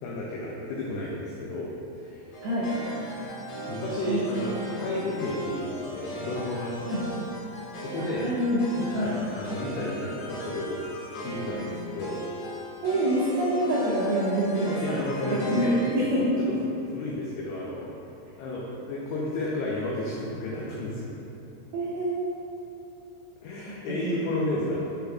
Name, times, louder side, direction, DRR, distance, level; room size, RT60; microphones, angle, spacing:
voice 1, 0.0-2.3 3.6-7.2 7.7-8.3 8.9-10.8 11.2-12.2 14.8-15.8 16.4-16.5 16.8-17.9 18.4-21.2 23.4-24.8, left 2 dB, 85° left, -4 dB, 2.3 m, -32 dB
sound 1, 2.3-16.2, right 1 dB, 70° left, 3.4 m, -38 dB
voice 2, 8.0-9.2 12.8-15.0 15.4-15.7 15.9-16.4 21.7-22.4 24.0-24.1 24.5-24.6, right 1 dB, 85° right, -8 dB, 2.2 m, -26 dB
7.1 x 6.8 x 2.3 m, 3.0 s
omnidirectional pair, 5.5 m